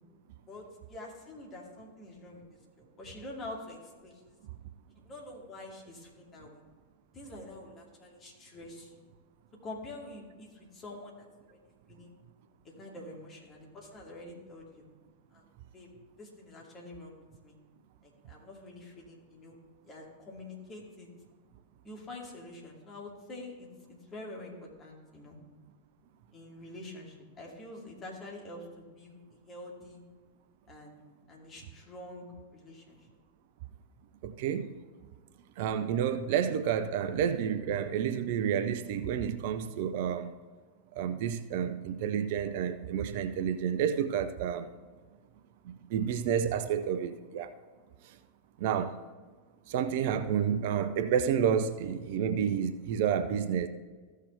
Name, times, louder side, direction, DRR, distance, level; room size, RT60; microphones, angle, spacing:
voice 1, 0.5-2.4 2.8-4.4 5.0-6.6 7.1-8.9 9.6-11.6 11.9-12.1 12.6-14.8 15.3-15.4 15.7-15.9 16.2-17.1 17.4-17.6 18.0-19.5 19.8-21.1 21.8-25.4 26.3-29.2 29.4-30.0 30.7-31.0 31.3-32.2 32.5-33.1, left 2 dB, 25° left, 2.4 m, -46 dB
voice 2, 34.2-34.7 35.6-40.3 40.9-44.7 45.6-47.5 48.0-48.2 48.6-49.0 49.7-53.7, right 8 dB, 50° right, 0.4 m, -30 dB
14.5 x 6.4 x 3.3 m
figure-of-eight pair, 90°, 0 cm